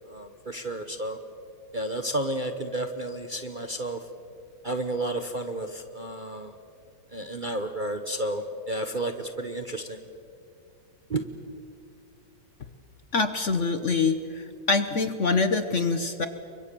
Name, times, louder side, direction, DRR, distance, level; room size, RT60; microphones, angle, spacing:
voice 1, 0.1-1.2 1.7-4.0 4.6-6.5 7.1-10.0 11.1-11.2, right 1 dB, 30° right, 7 dB, 1.0 m, -31 dB
voice 2, 13.1-16.3, left 4 dB, 45° left, 10 dB, 1.2 m, -25 dB
29.5 x 24.0 x 6.9 m, 2.3 s
omnidirectional pair, 2.1 m